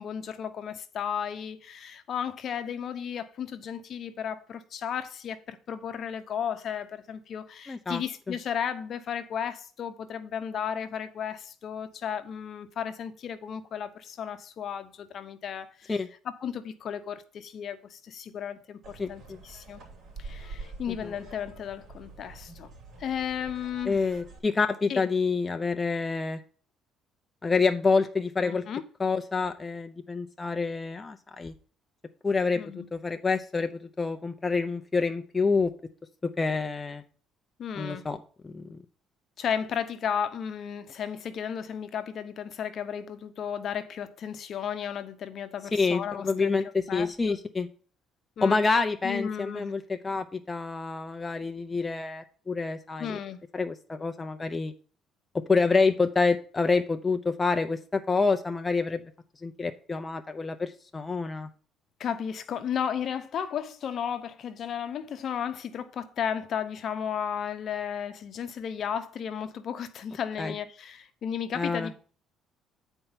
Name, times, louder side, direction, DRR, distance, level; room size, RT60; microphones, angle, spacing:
voice 1, 0.0-16.0 16.4-19.8 20.2-22.7 23.0-24.1 24.9-25.0 28.4-28.8 32.5-32.9 37.6-38.1 39.4-46.5 46.9-47.4 48.4-48.8 49.0-49.7 53.0-53.4 62.0-72.0, left 8 dB, 50° left, 0.9 m, -34 dB
voice 2, 7.7-8.3 15.9-16.1 19.0-19.4 21.0-21.1 23.9-26.4 27.4-28.6 29.0-31.5 32.2-35.7 36.4-37.0 37.8-38.2 38.4-38.8 45.7-47.7 48.4-53.2 53.5-54.7 55.5-59.1 59.4-61.5 70.4-70.5 71.6-71.9, left 4 dB, 20° left, 0.6 m, -27 dB
masts collide wind rythmically, 18.8-24.4, right 3 dB, 50° right, 3.5 m, -46 dB
9.3 x 4.5 x 5.7 m
cardioid pair, 115°, 0 cm